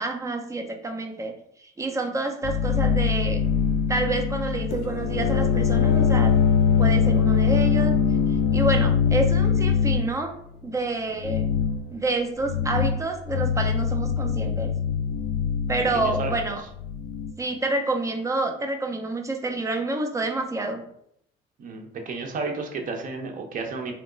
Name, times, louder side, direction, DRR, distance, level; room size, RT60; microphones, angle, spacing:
voice 1, 0.0-1.3 1.6-3.4 3.9-6.3 6.8-7.9 8.5-10.3 10.6-11.4 11.9-14.7 15.7-16.6 17.4-20.8, right 2 dB, 20° right, 4 dB, 0.7 m, -28 dB
sound 1, 2.4-10.1 11.2-11.8 12.4-13.0 13.3-17.3, left 7 dB, 85° left, 0.4 m, -22 dB
voice 2, 15.9-16.3 21.6-24.0, right 4 dB, 50° right, 3 dB, 0.9 m, -32 dB
3.5 x 3.0 x 3.9 m, 0.70 s
cardioid pair, 110°, 17 cm